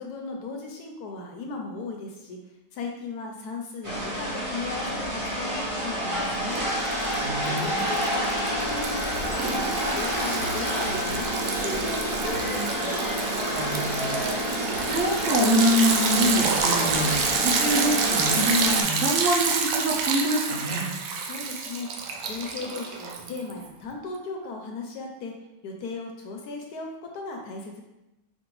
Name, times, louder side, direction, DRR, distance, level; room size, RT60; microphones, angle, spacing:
voice 1, 0.0-2.4 2.7-6.6 7.4-9.6 9.9-13.1 21.2-25.4 25.6-27.8, left 3 dB, 70° left, 1 dB, 1.1 m, -37 dB
sound 1, 3.8-18.8, equal, 30° right, 0.6 m, -29 dB
Liquid, 6.6-7.1 7.5-23.7, right 5 dB, 85° right, 1.2 m, -28 dB
voice 2, 7.2-7.8 13.5-14.3 14.9-20.9, equal, 55° right, -4 dB, 1.1 m, -25 dB
5.2 x 2.5 x 3.0 m, 0.94 s
omnidirectional pair, 1.8 m